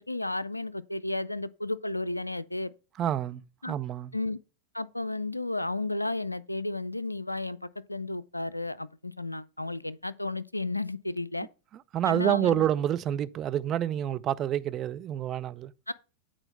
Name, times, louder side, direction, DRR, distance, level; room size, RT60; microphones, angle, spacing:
voice 1, 0.0-2.7 3.6-3.8 4.1-4.4 4.7-11.5 12.1-12.7 15.9-16.0, left 2 dB, 85° left, 0.4 m, -33 dB
voice 2, 3.0-4.1 11.7-15.7, right 11 dB, 30° right, 0.4 m, -28 dB
8.9 x 4.3 x 5.5 m
figure-of-eight pair, 90°, 0 cm